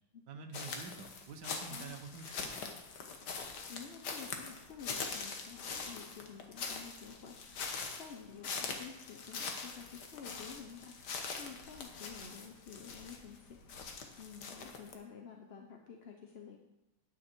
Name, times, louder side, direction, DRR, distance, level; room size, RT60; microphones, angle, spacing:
voice 1, 0.3-2.6, right 4 dB, 65° right, 5 dB, 1.7 m, -48 dB
sound 1, 0.5-14.9, left 5 dB, 65° left, 1.8 m, -43 dB
voice 2, 1.5-2.0 3.7-7.7 8.0-13.6 14.2-16.6, left 6 dB, 45° left, 2 dB, 0.9 m, -51 dB
11.0 x 9.2 x 4.6 m, 0.91 s
omnidirectional pair, 2.0 m